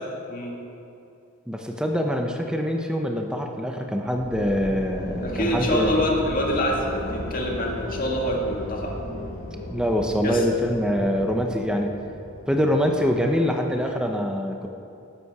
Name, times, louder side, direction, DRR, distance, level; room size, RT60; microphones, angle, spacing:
voice 1, 1.5-5.9 9.7-11.9 12.5-14.7, equal, 5° right, 2 dB, 0.8 m, -24 dB
sound 1, 4.1-14.0, left 1 dB, 80° left, 3.4 m, -35 dB
voice 2, 5.2-8.9 10.2-10.4, equal, 45° left, -1 dB, 2.0 m, -26 dB
19.5 x 8.4 x 4.8 m, 2.6 s
head